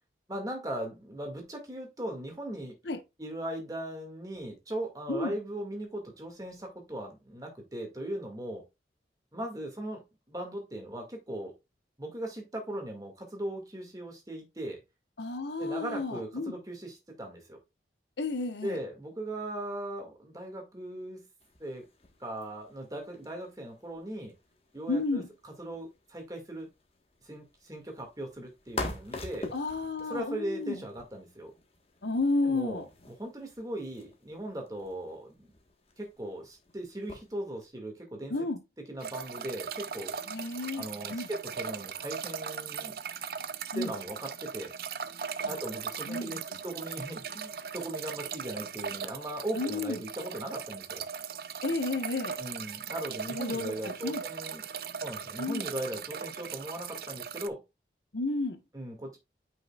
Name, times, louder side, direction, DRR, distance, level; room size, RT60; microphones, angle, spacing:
voice 1, 0.3-2.7 3.2-8.6 9.3-11.5 12.0-14.8 15.6-17.6 18.6-21.3 21.6-21.9 22.2-24.3 24.7-26.7 27.2-29.5 30.0-31.5 32.4-35.5 36.0-38.3 38.9-40.4 40.8-43.0 43.7-44.7 45.5-51.0 52.4-54.6 55.0-57.6 58.7-59.2, right 1 dB, 20° right, 2.1 m, -39 dB
voice 2, 15.2-16.5 18.2-18.8 24.9-25.3 29.5-30.8 32.0-32.8 38.3-38.6 40.3-40.8 41.1-41.3 43.7-43.9 45.4-45.5 46.1-46.4 49.6-50.0 51.6-52.4 53.3-54.2 55.4-55.7 58.1-58.6, left 3 dB, 80° left, 1.2 m, -32 dB
sound 1, 21.4-37.7, left 2 dB, 35° left, 1.4 m, -46 dB
sound 2, 39.0-57.5, right 7 dB, 55° right, 0.5 m, -39 dB
9.1 x 5.6 x 2.4 m
head